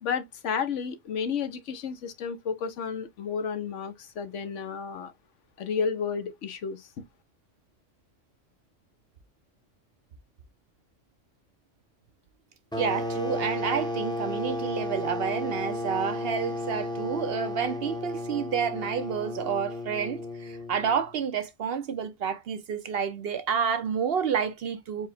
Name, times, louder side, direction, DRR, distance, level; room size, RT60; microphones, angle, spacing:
voice 1, 0.0-5.1 5.6-6.9, left 6 dB, 75° left, 1.1 m, -32 dB
sound 1, 12.7-21.1, left 2 dB, 5° left, 0.6 m, -33 dB
voice 2, 12.8-25.1, right 7 dB, 60° right, 0.8 m, -29 dB
4.7 x 2.1 x 4.1 m
omnidirectional pair, 1.3 m